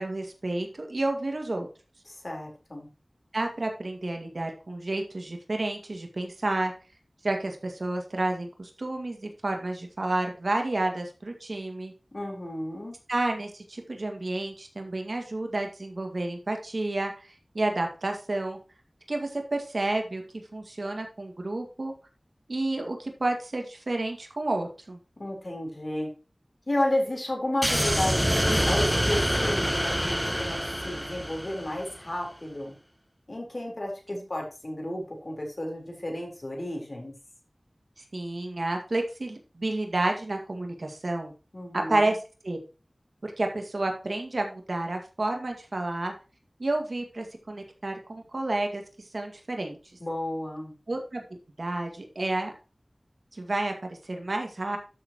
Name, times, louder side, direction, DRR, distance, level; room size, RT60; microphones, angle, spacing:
voice 1, 0.0-1.7 3.3-6.7 7.2-11.9 13.1-18.6 19.1-20.2 20.5-21.9 22.5-25.0 38.1-41.3 41.7-42.2 42.4-42.6 43.2-46.1 46.6-48.8 49.1-49.8 50.9-51.2 51.6-52.5 53.3-54.8, right 2 dB, 75° right, 3 dB, 2.0 m, -30 dB
voice 2, 2.1-2.9 12.1-12.9 25.2-26.1 26.7-32.7 33.3-37.1 41.5-42.1 50.0-50.7, left 1 dB, 50° left, 0 dB, 4.0 m, -32 dB
sound 1, 27.6-32.0, equal, 5° right, 0.6 m, -26 dB
12.5 x 6.9 x 3.0 m, 0.33 s
wide cardioid pair, 50°, 0 cm